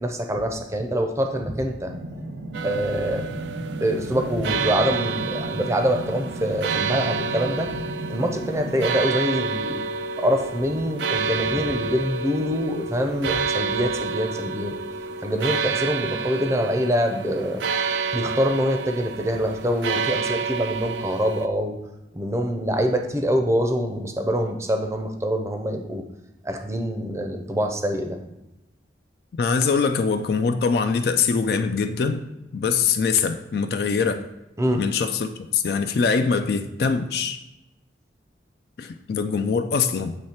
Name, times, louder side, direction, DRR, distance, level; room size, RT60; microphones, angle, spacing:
voice 1, 0.0-1.9 2.6-3.3 3.8-7.7 8.1-9.8 10.2-14.7 15.2-17.6 18.1-21.8 22.1-26.0 26.4-28.2 34.6-34.8, equal, 15° right, 4 dB, 0.5 m, -25 dB
sound 1, 1.9-8.9, right 1 dB, 90° right, 0.8 m, -35 dB
sound 2, 2.5-21.5, right 5 dB, 75° right, 0.4 m, -29 dB
voice 2, 29.4-32.2 32.5-34.2 34.8-37.4 38.8-40.2, left 5 dB, 60° left, 7 dB, 0.4 m, -23 dB
7.8 x 3.2 x 4.3 m, 0.94 s
head